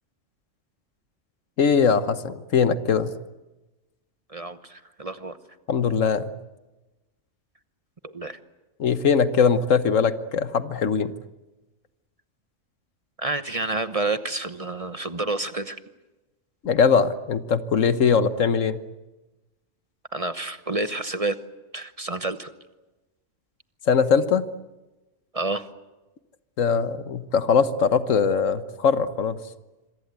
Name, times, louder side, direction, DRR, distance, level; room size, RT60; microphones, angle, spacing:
voice 1, 1.6-3.1 5.7-6.3 8.8-11.1 16.6-18.8 23.9-24.4 26.6-29.4, left 6 dB, 85° left, 12 dB, 1.5 m, -21 dB
voice 2, 4.3-5.4 8.0-8.4 13.2-15.8 20.1-21.4 21.7-22.5 25.3-25.6, right 2 dB, 30° right, 11 dB, 1.0 m, -29 dB
26.5 x 23.5 x 8.2 m, 1.1 s
omnidirectional pair, 1.3 m